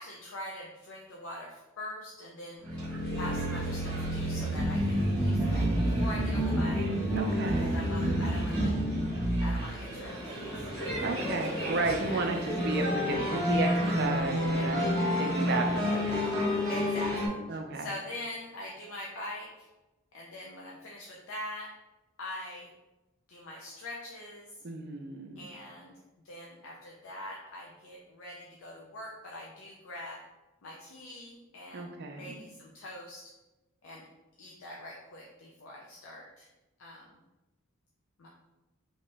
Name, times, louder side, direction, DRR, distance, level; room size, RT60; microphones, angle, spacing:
voice 1, 0.0-2.6 3.2-6.8 7.5-8.7 9.4-10.5 11.2-11.7 12.1-12.2 14.5-14.7 16.7-17.4 17.7-19.7 20.1-21.7 22.2-22.7 23.3-24.5 25.4-26.0 26.2-30.2 30.6-33.3 33.8-34.1 34.4-36.5 36.8-37.1 38.2-38.3, left 1 dB, 75° left, -2 dB, 0.5 m, -43 dB
sound 1, 2.6-17.3, equal, 5° left, 1.4 m, -29 dB
voice 2, 7.1-7.7 11.0-16.1 17.5-17.9 24.6-25.4 31.7-32.4, right 3 dB, 50° right, 4 dB, 0.4 m, -33 dB
3.0 x 2.8 x 3.3 m, 1.1 s
head